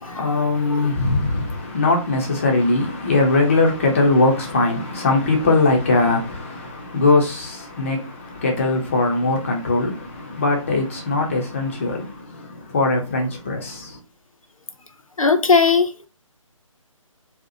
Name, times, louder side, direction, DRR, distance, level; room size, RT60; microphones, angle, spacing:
voice 1, 0.0-14.0, left 3 dB, 25° left, 0.4 m, -21 dB
voice 2, 15.2-16.1, left 5 dB, 75° left, 0.5 m, -18 dB
2.7 x 2.0 x 2.6 m
figure-of-eight pair, 145°, 17 cm